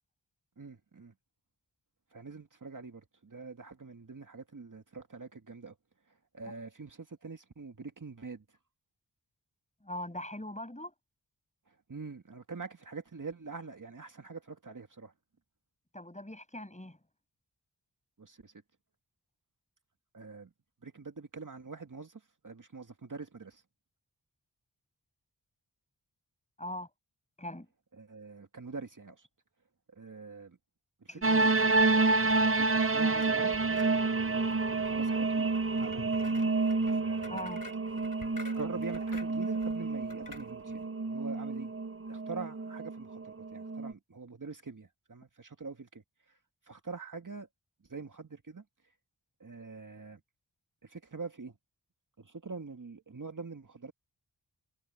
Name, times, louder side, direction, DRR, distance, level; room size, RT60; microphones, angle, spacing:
voice 1, 0.6-1.1 2.1-5.8 6.1-8.6 11.7-15.1 18.2-18.5 20.1-20.5 20.8-23.6 27.9-29.3 29.9-30.6 31.0-32.3 32.5-33.7 34.1-37.6 38.6-41.7 42.1-46.4 46.6-47.5 47.9-48.6 49.4-50.2 50.8-51.6 52.2-53.9, right 4 dB, 50° right, 2.1 m, -45 dB
voice 2, 9.8-10.9 15.9-17.0 26.6-26.9 27.4-27.7 31.1-31.3 37.3-37.6, left 1 dB, 15° left, 6.8 m, -41 dB
sound 1, 31.2-43.9, right 3 dB, 35° right, 1.1 m, -29 dB
sound 2, 31.5-40.9, left 3 dB, 55° left, 5.8 m, -51 dB
cardioid pair, 45°, 40 cm